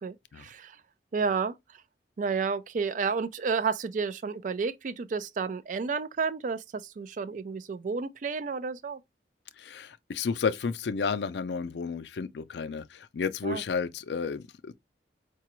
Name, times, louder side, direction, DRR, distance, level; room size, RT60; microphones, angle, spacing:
voice 1, 0.0-0.8 1.1-1.6 2.2-9.0 13.4-13.6, right 5 dB, 45° right, 0.4 m, -31 dB
voice 2, 9.6-14.7, left 5 dB, 70° left, 0.4 m, -32 dB
4.8 x 2.3 x 2.9 m
head